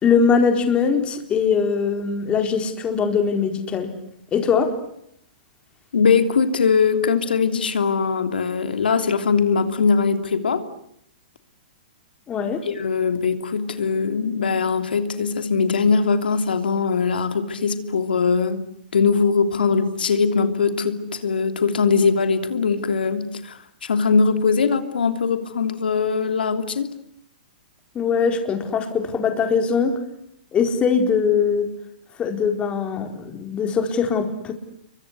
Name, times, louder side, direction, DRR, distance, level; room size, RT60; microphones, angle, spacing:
voice 1, 0.0-3.9 4.3-4.7 12.3-12.6 27.9-29.9 30.5-31.7 32.2-34.5, left 6 dB, 20° left, 5 dB, 4.4 m, -21 dB
voice 2, 5.9-10.6 12.6-18.7 18.9-26.9, left 5 dB, 85° left, 8 dB, 3.1 m, -21 dB
29.0 x 24.0 x 8.3 m, 0.73 s
hypercardioid pair, 135°, 5 cm